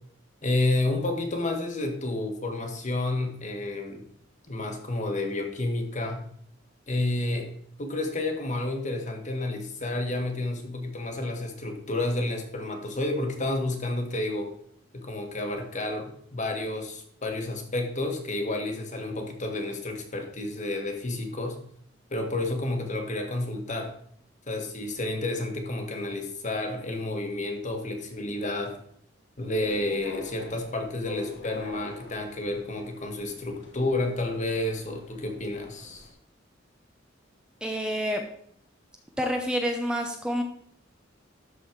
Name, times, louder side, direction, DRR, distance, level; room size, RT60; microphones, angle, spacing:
voice 1, 0.4-4.1 4.5-6.2 6.9-7.5 7.8-14.5 14.9-21.6 22.1-23.9 24.5-28.8 29.4-36.1, left 2 dB, 40° left, 4 dB, 1.5 m, -30 dB
sound 1, 29.5-36.1, left 1 dB, 65° left, 1.5 m, -45 dB
voice 2, 37.6-38.2 39.2-40.4, equal, 5° right, 3 dB, 0.7 m, -28 dB
12.5 x 4.2 x 4.6 m, 0.66 s
head